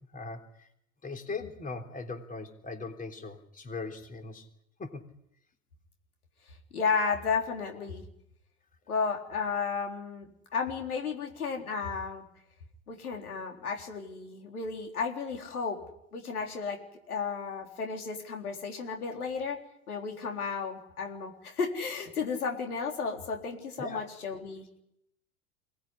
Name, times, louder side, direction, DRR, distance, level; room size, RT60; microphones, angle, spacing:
voice 1, 0.1-0.7 1.0-4.5 4.8-5.0 23.8-24.0, left 3 dB, 20° left, 5 dB, 3.5 m, -39 dB
voice 2, 6.5-8.0 8.9-12.3 12.9-15.8 16.1-16.8 17.1-19.6 19.9-24.7, left 5 dB, 85° left, 3 dB, 3.9 m, -33 dB
24.0 x 19.0 x 9.9 m, 0.79 s
hypercardioid pair, 95°, 43 cm